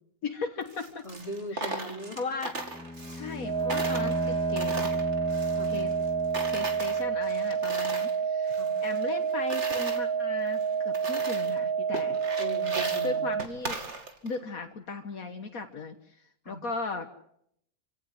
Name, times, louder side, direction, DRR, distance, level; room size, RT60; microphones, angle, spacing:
voice 1, 0.2-1.0 1.5-1.8 2.2-2.6 3.1-4.9 5.7-5.9 6.5-12.2 13.0-13.8 14.2-17.1, left 4 dB, 70° left, 6 dB, 1.9 m, -37 dB
Coin (dropping), 0.6-3.4 3.7-6.1 6.3-8.2 8.5-10.0 10.5-10.6 10.9-11.6 11.9-14.4, right 3 dB, 50° right, 2.8 m, -38 dB
voice 2, 1.0-2.2 5.5-5.7 8.6-8.7 12.4-13.2 16.4-16.6, right 1 dB, 25° left, 2 dB, 3.5 m, -39 dB
Bowed string instrument, 2.5-7.3, left 3 dB, 5° left, 1.9 m, -37 dB
sound 1, 3.4-13.5, right 6 dB, 85° right, 1.7 m, -29 dB
28.0 x 17.0 x 8.0 m, 0.73 s
omnidirectional pair, 1.5 m